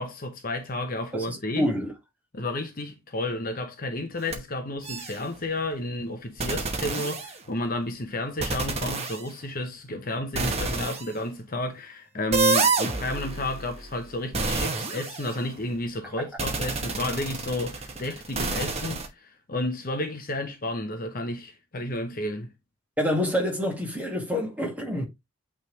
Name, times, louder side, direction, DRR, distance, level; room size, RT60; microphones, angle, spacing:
voice 1, 0.0-1.7 2.3-22.5, left 1 dB, 40° left, 0.9 m, -32 dB
voice 2, 1.1-1.9 23.0-25.0, left 1 dB, 5° right, 1.9 m, -27 dB
sound 1, 4.2-4.4 4.8-5.3 6.4-7.7 8.4-9.3 10.3-11.1 12.3-15.7 16.4-19.1, right 3 dB, 30° right, 1.1 m, -29 dB
8.7 x 3.6 x 3.2 m
head